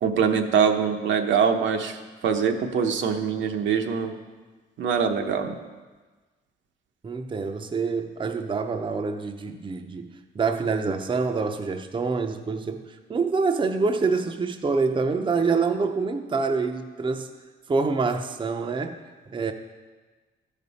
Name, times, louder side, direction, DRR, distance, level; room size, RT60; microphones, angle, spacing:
voice 1, 0.0-4.1 4.8-5.6, right 6 dB, 70° right, 5 dB, 0.8 m, -23 dB
voice 2, 7.0-12.8 13.1-17.3 17.7-19.5, right 4 dB, 25° right, 6 dB, 0.6 m, -26 dB
13.0 x 5.2 x 4.1 m, 1.3 s
cardioid pair, 90°, 20 cm